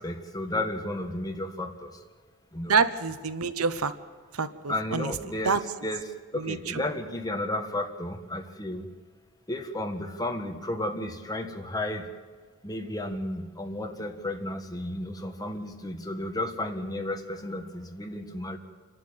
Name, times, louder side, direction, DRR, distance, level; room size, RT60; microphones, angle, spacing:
voice 1, 0.0-2.0 2.5-2.8 4.7-8.9 9.5-12.1 12.6-18.6, left 1 dB, 20° left, 4 dB, 1.5 m, -33 dB
voice 2, 2.7-3.9 4.4-5.1 5.4-5.6 6.4-6.8, right 5 dB, 90° right, 12 dB, 1.0 m, -27 dB
28.0 x 11.5 x 8.9 m, 1.5 s
head